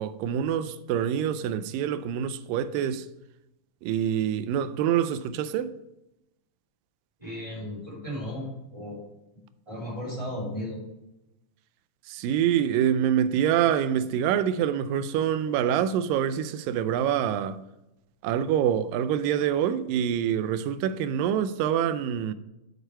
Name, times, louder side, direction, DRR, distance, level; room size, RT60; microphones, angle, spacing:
voice 1, 0.0-3.1 3.8-5.7 12.1-17.6 18.2-22.3, right 9 dB, 85° right, 2.2 m, -26 dB
voice 2, 7.2-9.0 9.7-10.8, left 1 dB, 10° right, 2.9 m, -35 dB
6.6 x 6.6 x 4.5 m
omnidirectional pair, 4.0 m